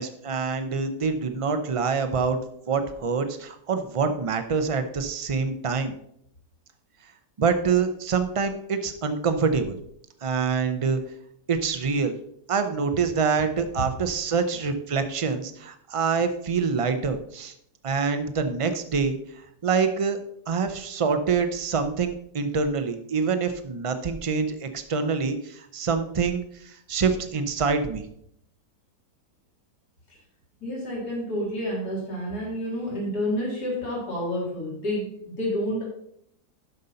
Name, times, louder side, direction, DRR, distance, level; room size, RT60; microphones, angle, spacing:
voice 1, 0.0-2.4 2.7-5.9 7.4-9.8 10.2-11.0 11.5-12.1 12.5-17.5 17.8-19.2 19.6-20.2 20.5-28.1, right 5 dB, 50° right, 9 dB, 0.3 m, -26 dB
voice 2, 30.6-35.8, equal, 75° left, -3 dB, 3.2 m, -29 dB
12.0 x 5.6 x 4.0 m, 0.71 s
omnidirectional pair, 1.7 m